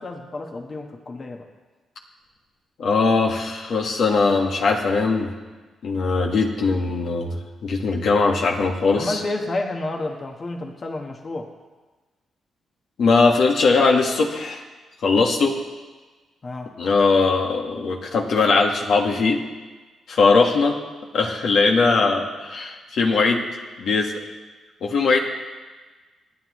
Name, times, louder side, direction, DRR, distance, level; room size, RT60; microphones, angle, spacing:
voice 1, 0.0-1.5 8.9-11.5 16.4-16.7, left 2 dB, 45° left, 2 dB, 1.4 m, -30 dB
voice 2, 2.8-5.3 5.8-9.2 13.0-14.6 15.0-15.6 16.8-19.4 20.1-20.8 21.1-23.5 23.8-24.1 24.8-25.2, left 4 dB, 70° left, 1 dB, 1.6 m, -20 dB
26.5 x 9.8 x 3.2 m, 1.3 s
cardioid pair, 75°, 0 cm